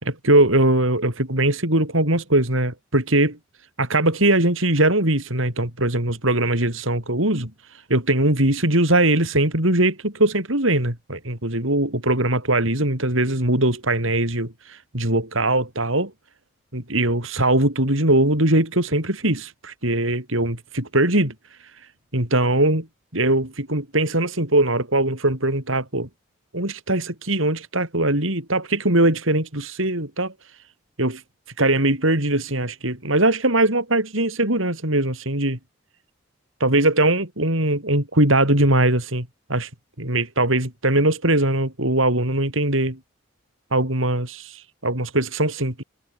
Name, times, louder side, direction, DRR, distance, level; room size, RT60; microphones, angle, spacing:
voice 1, 0.0-3.4 3.8-7.5 7.9-16.1 16.7-21.3 22.1-22.9 23.1-26.1 26.5-30.3 31.0-31.2 31.6-35.6 36.6-39.7 40.0-43.0 43.7-45.8, right 1 dB, 75° right, 6.2 m, -21 dB
head